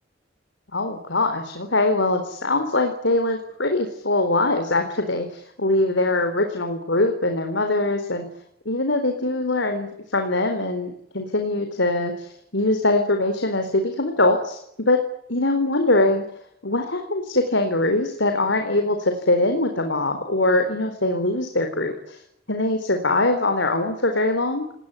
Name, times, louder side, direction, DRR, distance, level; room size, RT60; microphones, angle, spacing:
voice 1, 0.7-8.3 8.7-15.0 15.3-16.2 16.6-22.2 22.5-24.7, left 2 dB, 85° left, 6 dB, 4.2 m, -22 dB
29.5 x 19.5 x 9.8 m, 0.76 s
head